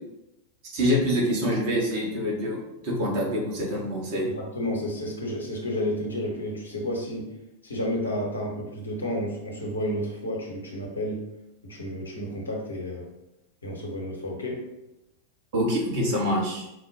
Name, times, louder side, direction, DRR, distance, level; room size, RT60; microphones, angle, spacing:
voice 1, 0.7-2.6 2.8-4.3 15.5-16.7, equal, 50° right, -2 dB, 1.1 m, -25 dB
voice 2, 4.4-7.3 7.6-11.2 11.6-13.1 13.6-14.7, left 1 dB, 75° left, -1 dB, 0.8 m, -31 dB
4.6 x 2.1 x 2.7 m, 0.89 s
figure-of-eight pair, 90°, 0 cm